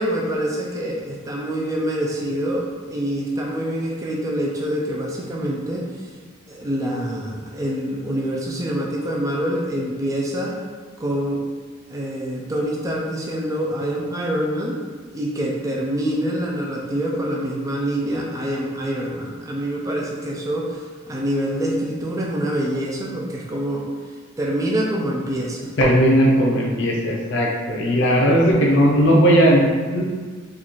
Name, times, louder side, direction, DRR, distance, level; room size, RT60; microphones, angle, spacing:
voice 1, 0.0-6.1 6.5-10.5 11.0-11.4 11.9-14.8 15.1-23.9 24.4-25.6, right 1 dB, 15° right, -2 dB, 0.3 m, -25 dB
voice 2, 25.8-30.0, equal, 60° left, -1 dB, 0.6 m, -17 dB
3.9 x 2.4 x 3.0 m, 1.5 s
head